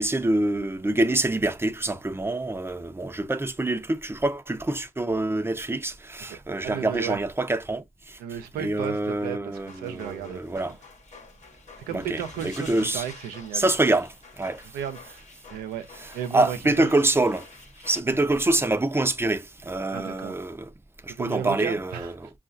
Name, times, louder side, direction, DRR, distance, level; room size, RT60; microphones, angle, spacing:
voice 1, 0.0-8.2 8.6-10.7 11.9-13.0 13.5-14.1 14.4-14.6 16.3-17.5 17.8-20.7 21.0-22.3, right 2 dB, 15° right, 0.7 m, -26 dB
voice 2, 6.3-7.2 8.2-10.8 11.9-14.0 14.7-15.2 15.5-15.9 16.1-16.9 18.1-18.2 19.9-20.4 21.2-22.1, right 9 dB, 85° right, 0.7 m, -34 dB
sound 1, 9.5-18.0, left 4 dB, 50° left, 1.1 m, -48 dB
5.4 x 2.5 x 2.5 m
supercardioid pair, 50°, 15 cm